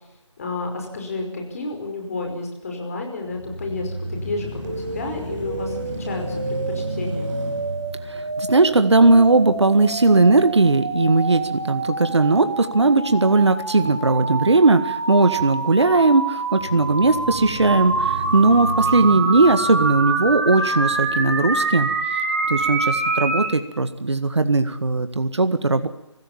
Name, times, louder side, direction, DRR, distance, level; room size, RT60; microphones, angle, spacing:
voice 1, 0.4-7.3, left 3 dB, 30° left, 2 dB, 5.3 m, -31 dB
sound 1, 3.2-11.4 11.9-12.0 16.5-21.0, equal, 10° right, 5.4 m, -33 dB
sound 2, 4.6-23.5, right 3 dB, 30° right, 2.8 m, -26 dB
voice 2, 8.1-21.9 22.5-25.9, right 3 dB, 65° right, 10 dB, 1.8 m, -18 dB
25.0 x 15.5 x 7.2 m, 0.92 s
figure-of-eight pair, 160°, 16 cm